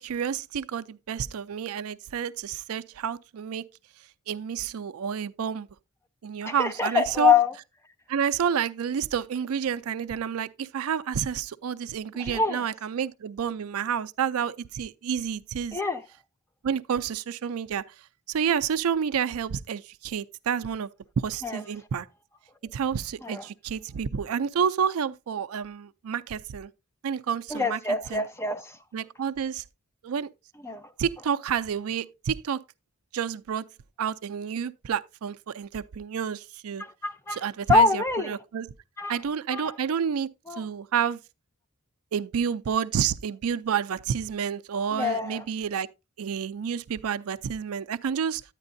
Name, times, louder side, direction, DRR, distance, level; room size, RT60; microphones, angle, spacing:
voice 1, 0.0-3.7 4.3-5.7 6.2-7.3 8.1-15.8 16.6-17.8 18.3-20.9 21.2-22.1 22.7-26.7 27.0-27.8 28.1-28.2 28.9-29.6 30.0-30.3 30.7-32.6 33.1-33.7 34.0-36.8 37.3-38.7 39.1-40.3 40.6-41.2 42.1-45.9 46.2-48.4, right 7 dB, 80° right, 0.4 m, -29 dB
voice 2, 6.4-7.5 12.2-12.6 15.7-16.0 21.4-21.6 23.2-23.4 27.5-28.8 30.6-30.8 36.8-37.4 37.7-38.3 39.0-39.1 39.5-39.7 40.5-40.6 44.9-45.4, left 4 dB, 10° left, 0.5 m, -25 dB
10.5 x 9.0 x 2.6 m
head